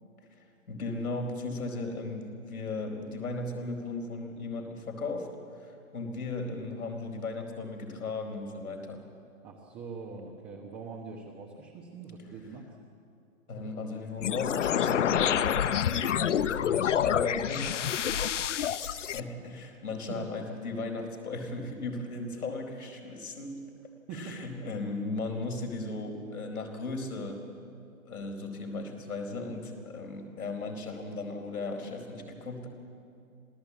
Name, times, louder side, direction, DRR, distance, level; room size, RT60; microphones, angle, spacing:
voice 1, 0.4-5.3 5.5-9.0 12.2-12.4 13.5-17.9 18.5-23.6 24.1-27.4 28.0-32.7, left 3 dB, 80° left, 3 dB, 4.5 m, -36 dB
voice 2, 9.4-12.7 20.1-20.2 24.1-24.5, right 5 dB, 15° right, -1 dB, 1.2 m, -43 dB
sound 1, 14.2-19.2, left 9 dB, 55° left, 0.8 m, -27 dB
26.5 x 17.0 x 8.4 m, 2.5 s
hypercardioid pair, 155°, 43 cm